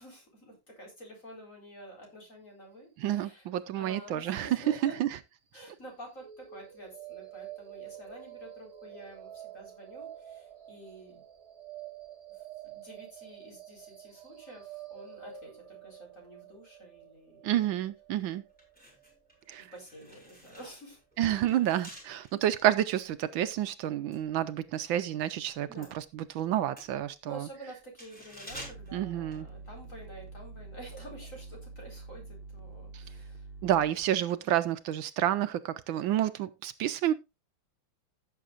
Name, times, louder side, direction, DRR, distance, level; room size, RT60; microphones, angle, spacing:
voice 1, 0.0-3.5 3.8-5.0 5.5-11.2 12.6-17.6 19.6-21.0 25.7-26.0 27.2-33.5, right 1 dB, 35° left, 4.8 m, -49 dB
voice 2, 3.0-5.1 17.4-18.4 19.5-19.7 21.2-27.5 28.9-29.5 32.9-33.0 33.6-37.1, right 12 dB, 75° right, 1.4 m, -29 dB
sound 1, 6.1-20.1, right 11 dB, 35° right, 2.3 m, -48 dB
sound 2, 17.9-18.1 18.5-25.1 25.4-30.0 30.3-30.5, equal, 5° left, 4.7 m, -51 dB
sound 3, 28.5-34.1, right 3 dB, 60° right, 1.5 m, -46 dB
16.0 x 7.5 x 2.5 m
omnidirectional pair, 2.2 m